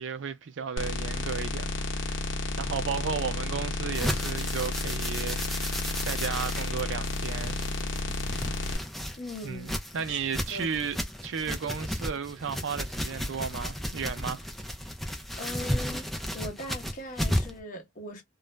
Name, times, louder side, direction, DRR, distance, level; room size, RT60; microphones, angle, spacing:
voice 1, 0.0-2.2 2.6-7.6 8.5-8.6 9.4-14.5, right 6 dB, 75° right, 0.5 m, -34 dB
sound 1, 0.8-8.8, left 2 dB, 75° left, 0.8 m, -32 dB
sound 2, 3.9-17.6, equal, ahead, 0.4 m, -34 dB
voice 2, 9.2-9.8 10.1-10.2 10.5-10.7 15.4-16.1 16.3-18.2, left 1 dB, 45° left, 0.9 m, -39 dB
2.4 x 2.0 x 3.1 m
head